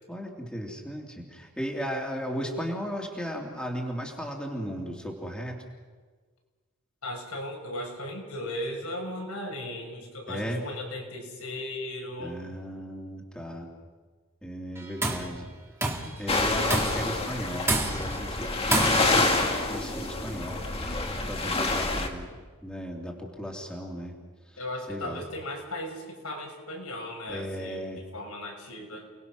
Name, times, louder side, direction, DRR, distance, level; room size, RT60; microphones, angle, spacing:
voice 1, 0.1-5.6 10.3-10.6 12.2-13.7 14.4-15.5 16.2-20.9 21.1-22.3 22.6-24.2 24.9-25.2 27.3-28.0, equal, 5° left, -1 dB, 2.9 m, -36 dB
voice 2, 7.0-12.4 24.6-29.1, left 1 dB, 80° left, 1 dB, 5.7 m, -37 dB
Tools, 14.8-15.3 15.8-16.2 16.7-17.1 17.7-18.2 18.7-19.3, right 2 dB, 10° right, 2.2 m, -28 dB
sound 1, 16.3-22.1, left 2 dB, 25° left, 2.1 m, -27 dB
29.5 x 20.5 x 6.2 m, 1.5 s
head